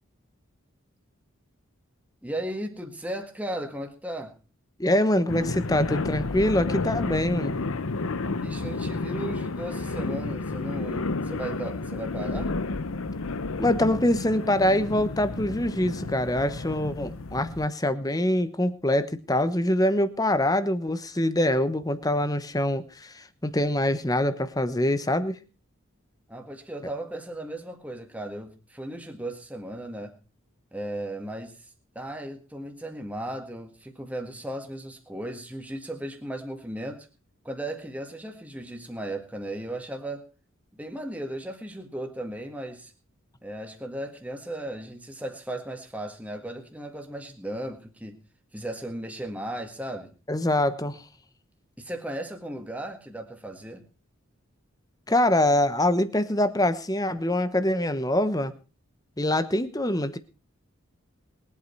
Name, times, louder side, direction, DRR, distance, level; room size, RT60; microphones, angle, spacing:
voice 1, 2.2-4.3 8.4-12.5 26.3-30.1 30.7-37.1 37.4-40.3 40.7-42.9 43.4-48.2 48.5-50.1 51.8-53.9, right 1 dB, 5° right, 4 dB, 1.8 m, -36 dB
voice 2, 4.8-7.6 13.6-25.3 50.3-51.0 55.1-58.5 59.2-60.2, left 1 dB, 15° left, 13 dB, 1.0 m, -24 dB
sound 1, 5.3-17.6, left 3 dB, 80° left, 0.9 m, -31 dB
22.0 x 8.6 x 4.5 m, 0.34 s
head